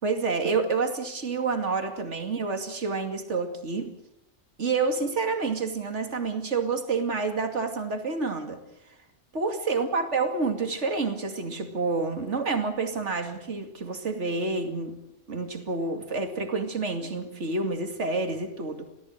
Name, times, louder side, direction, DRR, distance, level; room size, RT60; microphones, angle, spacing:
voice 1, 0.0-3.9 4.6-8.6 9.3-15.0 15.3-18.9, right 4 dB, 75° right, 5 dB, 2.7 m, -28 dB
28.0 x 18.0 x 6.6 m, 0.80 s
omnidirectional pair, 1.2 m